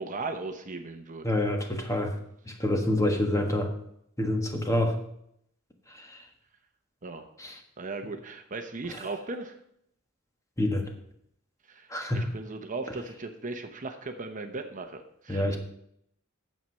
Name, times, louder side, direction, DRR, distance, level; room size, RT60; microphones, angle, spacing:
voice 1, 0.0-1.3 7.0-7.3 7.8-9.6 11.7-15.6, right 3 dB, 40° right, 6 dB, 0.9 m, -37 dB
voice 2, 1.2-2.1 2.5-3.7 4.2-5.0 5.9-6.2 7.4-7.6 10.6-10.9 11.9-12.3 15.3-15.6, left 1 dB, 15° left, 3 dB, 1.4 m, -27 dB
9.2 x 7.4 x 5.6 m, 0.73 s
head